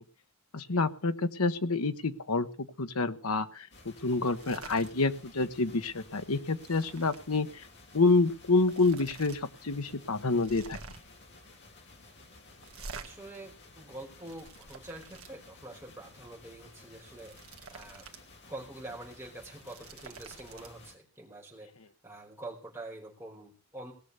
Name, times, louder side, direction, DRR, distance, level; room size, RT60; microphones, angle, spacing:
voice 1, 0.5-7.6 7.9-10.8, left 3 dB, 85° left, 10 dB, 1.1 m, -28 dB
sound 1, 3.7-20.9, left 3 dB, 50° left, 3.2 m, -55 dB
sound 2, 4.3-4.9 5.3-5.5 5.9-7.2 8.2-8.3 8.6-9.4 9.7-9.8 10.3-11.2 12.6-13.1 13.9-15.3 17.0-18.2 18.6-18.7 19.4-20.7, right 4 dB, 70° right, 1.8 m, -48 dB
voice 2, 4.6-4.9 13.0-17.3 17.7-18.1 18.5-21.7 22.0-23.9, right 2 dB, 10° right, -2 dB, 4.8 m, -46 dB
18.5 x 6.7 x 8.1 m, 0.40 s
head